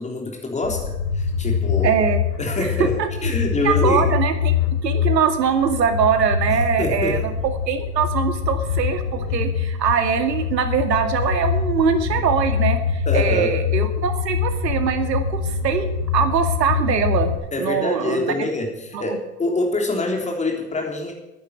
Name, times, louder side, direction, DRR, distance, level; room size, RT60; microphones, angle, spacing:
voice 1, 0.0-2.0 2.4-3.0 3.2-4.2 6.5-7.2 13.1-13.6 17.5-21.1, left 2 dB, 15° left, 1 dB, 3.6 m, -25 dB
sound 1, 0.6-17.3, left 6 dB, 85° left, 3.6 m, -24 dB
voice 2, 1.8-2.2 2.6-3.1 3.6-4.6 4.8-15.9 16.1-17.3 17.6-18.3 18.9-19.2, right 7 dB, 90° right, 7 dB, 2.3 m, -22 dB
11.5 x 10.5 x 8.6 m, 0.94 s
hypercardioid pair, 125°, 48 cm